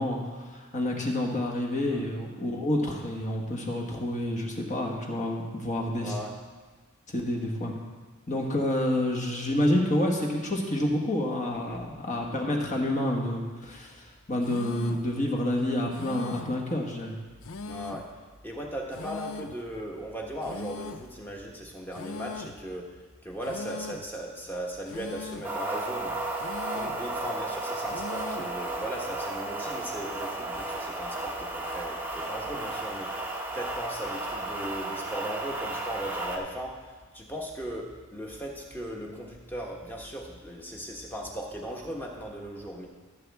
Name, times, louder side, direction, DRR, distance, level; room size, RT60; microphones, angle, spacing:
voice 1, 0.0-6.2 7.1-7.8 8.3-17.1, left 1 dB, 35° left, 0 dB, 1.4 m, -28 dB
voice 2, 6.0-6.3 11.5-11.8 17.7-18.1 18.4-22.9 23.2-26.1 26.7-42.9, equal, 10° left, -1 dB, 1.3 m, -38 dB
sound 1, 14.4-15.1 15.9-16.6 17.4-18.1 18.9-19.6 20.4-21.1 21.9-22.6 23.4-24.1 24.9-25.6 26.4-27.1 27.9-28.6, left 4 dB, 60° left, 0.5 m, -40 dB
sound 2, 25.4-36.4, right 2 dB, 10° right, 0.8 m, -34 dB
15.5 x 7.4 x 3.5 m, 1.4 s
head